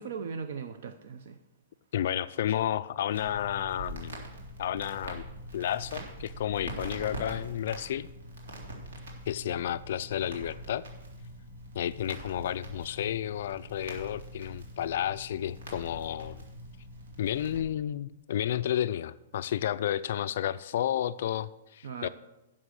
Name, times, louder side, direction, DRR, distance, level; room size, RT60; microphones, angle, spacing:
voice 1, 0.0-1.4 21.8-22.1, right 6 dB, 55° right, 10 dB, 0.6 m, -38 dB
voice 2, 1.9-4.2 4.6-5.2 5.5-8.1 9.3-10.8 11.7-16.4 17.2-22.1, left 11 dB, 50° left, 14 dB, 0.3 m, -31 dB
Crackle, 3.1-17.6, right 1 dB, 85° right, 3.4 m, -43 dB
11.5 x 7.4 x 6.4 m, 0.98 s
hypercardioid pair, 180°, 0 cm